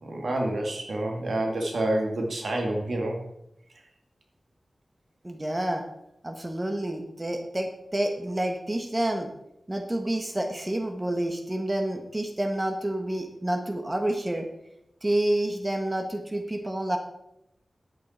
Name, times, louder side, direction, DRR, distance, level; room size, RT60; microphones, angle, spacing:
voice 1, 0.0-3.2, right 1 dB, 80° right, 1 dB, 2.1 m, -28 dB
voice 2, 5.2-5.8 6.2-9.3 9.7-14.5 15.0-17.0, right 1 dB, 20° right, 5 dB, 1.2 m, -29 dB
10.5 x 8.4 x 4.3 m, 0.82 s
wide cardioid pair, 75°, 0 cm